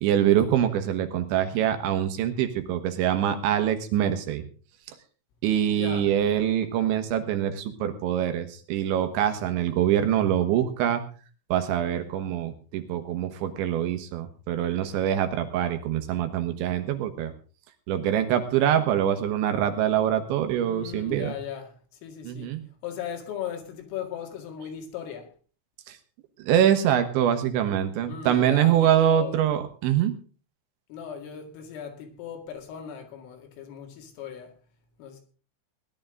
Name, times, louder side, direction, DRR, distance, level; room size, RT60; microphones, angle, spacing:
voice 1, 0.0-4.4 4.9-5.0 5.4-11.0 11.5-17.3 17.9-21.4 22.2-22.6 25.9-26.0 26.4-30.1, right 10 dB, 75° right, 3.3 m, -24 dB
voice 2, 5.7-6.1 20.6-22.5 22.8-25.3 28.1-29.4 30.9-34.5 35.0-35.2, left 8 dB, 90° left, 4.8 m, -38 dB
17.5 x 11.5 x 3.8 m
omnidirectional pair, 5.7 m